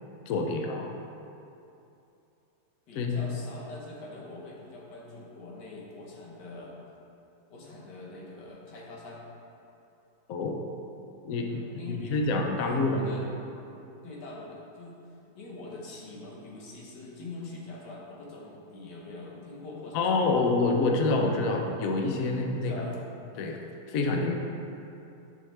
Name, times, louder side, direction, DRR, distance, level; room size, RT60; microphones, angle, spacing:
voice 1, 0.3-0.9 2.9-3.2 10.3-10.6 11.2-13.1 19.9-22.7 23.4-23.6 23.9-24.4, left 3 dB, 65° left, 2 dB, 1.0 m, -27 dB
voice 2, 2.9-6.8 7.5-9.3 11.5-12.3 12.6-13.3 13.6-13.7 14.0-15.0 15.4-20.5 22.5-23.0, left 2 dB, 90° left, -3 dB, 1.8 m, -43 dB
9.2 x 5.7 x 3.3 m, 2.8 s
omnidirectional pair, 1.8 m